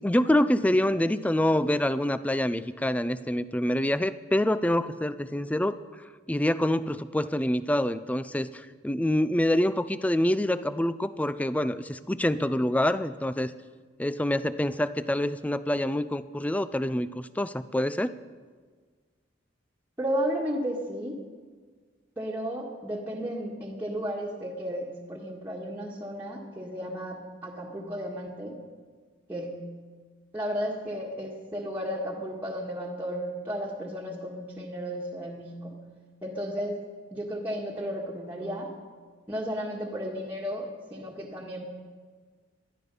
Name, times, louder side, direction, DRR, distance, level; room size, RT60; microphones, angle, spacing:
voice 1, 0.0-5.8 6.3-13.5 14.0-18.1, left 1 dB, 5° left, 14 dB, 0.4 m, -26 dB
voice 2, 20.0-21.2 22.2-28.6 29.3-29.7 30.3-35.8 36.2-36.8 37.1-38.7 39.3-41.6, equal, 10° right, -4 dB, 1.7 m, -33 dB
19.5 x 13.0 x 5.5 m, 1.5 s
head